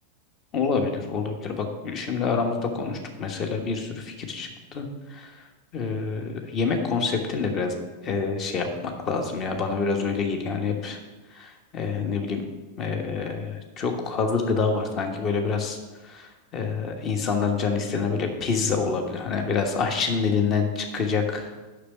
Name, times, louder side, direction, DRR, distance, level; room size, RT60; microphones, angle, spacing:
voice 1, 0.5-5.3 5.7-7.7 8.0-11.0 11.3-12.4 12.8-15.8 16.0-21.6, left 5 dB, 30° left, 4 dB, 1.3 m, -27 dB
6.7 x 6.1 x 6.8 m, 1.2 s
figure-of-eight pair, 90°, 0 cm